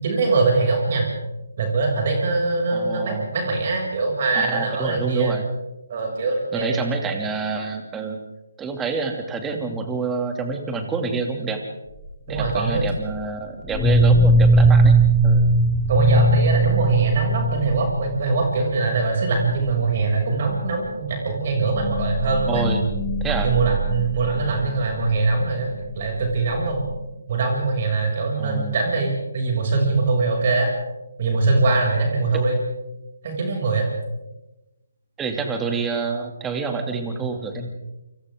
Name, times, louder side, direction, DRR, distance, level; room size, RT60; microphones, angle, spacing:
voice 1, 0.0-1.0 1.6-5.3 5.9-6.8 12.3-12.9 14.6-14.7 15.9-22.6 23.4-25.7 25.9-26.9 27.3-30.7 31.2-32.6 33.2-33.9, right 3 dB, 40° right, 1 dB, 6.7 m, -22 dB
voice 2, 2.7-3.3 4.3-5.4 6.5-8.2 8.6-11.6 12.3-15.4 22.5-22.9 23.2-23.5 28.4-28.7 32.3-32.4 35.2-37.7, right 4 dB, 10° right, 4 dB, 2.6 m, -27 dB
sound 1, 12.4-12.8 13.7-18.2 18.5-18.7 19.0-19.3 19.5-19.8 20.5-20.6 21.6-24.8, right 1 dB, 10° left, 4.0 m, -19 dB
28.5 x 26.5 x 3.8 m, 1.0 s
figure-of-eight pair, 145°, 0 cm